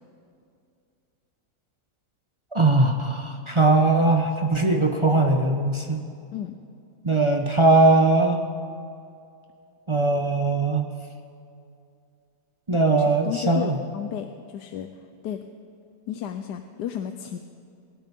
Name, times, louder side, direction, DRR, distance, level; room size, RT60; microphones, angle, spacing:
voice 1, 2.5-6.0 7.0-8.4 9.9-10.9 12.7-13.8, right 2 dB, 30° right, 3 dB, 0.6 m, -20 dB
voice 2, 12.9-14.9 15.2-15.4 16.1-17.4, left 9 dB, 80° left, 7 dB, 1.2 m, -33 dB
24.0 x 12.5 x 3.6 m, 2.5 s
omnidirectional pair, 1.8 m